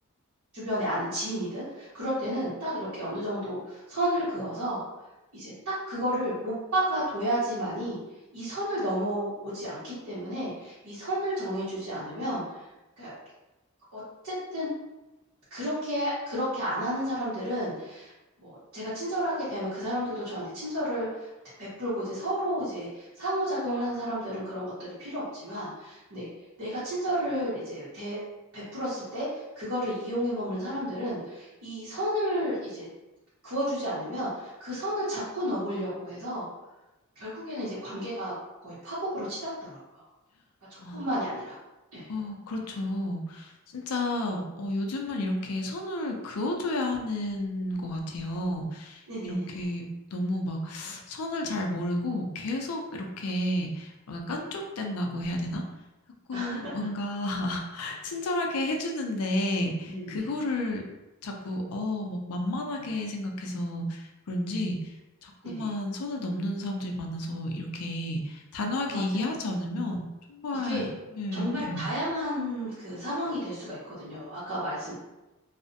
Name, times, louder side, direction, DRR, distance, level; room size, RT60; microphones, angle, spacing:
voice 1, 0.5-4.8 5.3-8.0 8.3-12.4 13.0-13.1 13.9-14.7 15.5-18.1 18.4-21.3 21.6-26.3 26.6-28.2 28.5-32.9 33.4-36.5 37.2-38.3 38.6-40.0 40.7-41.6 41.9-42.1 49.1-49.6 56.3-56.7 59.9-60.4 65.4-65.7 68.9-69.3 70.6-70.9 71.3-74.9, equal, 65° right, -12 dB, 0.9 m, -32 dB
voice 2, 42.1-49.8 50.1-55.6 56.3-60.8 61.2-64.8 65.2-70.0 70.3-70.9 71.2-71.8, left 1 dB, 80° left, 2 dB, 0.4 m, -31 dB
2.4 x 2.0 x 2.6 m, 1.0 s
head